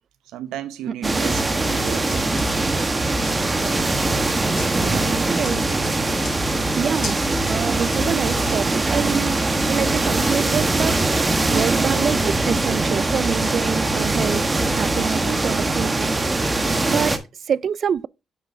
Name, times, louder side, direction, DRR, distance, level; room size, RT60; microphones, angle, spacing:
voice 1, 0.3-2.3 2.8-2.9 4.7-5.6 16.7-16.8, right 11 dB, 90° right, 0.9 m, -34 dB
sound 1, 1.0-17.2, right 2 dB, 20° right, 1.2 m, -22 dB
sound 2, 1.8-11.6, left 3 dB, 45° left, 4.4 m, -40 dB
voice 2, 5.3-5.9 6.8-7.2 7.5-9.3 9.7-14.4 14.7-16.1 16.9-18.1, right 7 dB, 55° right, 0.3 m, -26 dB
7.5 x 6.9 x 2.6 m
cardioid pair, 90°, 0 cm